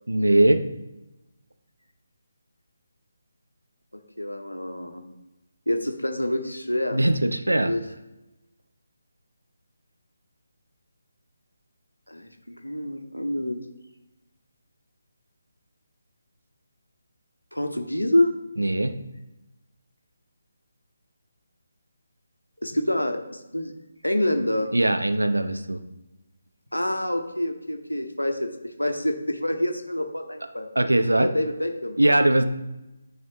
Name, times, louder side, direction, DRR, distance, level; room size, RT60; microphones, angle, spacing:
voice 1, 0.1-0.6 6.9-7.7 18.6-19.0 24.7-25.8 30.8-31.3 32.0-32.5, right 1 dB, 80° right, 9 dB, 0.6 m, -20 dB
voice 2, 4.2-5.0 5.7-7.0 7.6-7.8 12.1-13.6 17.5-18.3 22.6-23.7 24.0-24.7 26.7-30.7 31.2-32.0, left 1 dB, 90° left, 4 dB, 1.0 m, -27 dB
10.5 x 4.2 x 3.0 m, 0.99 s
figure-of-eight pair, 150°, 0 cm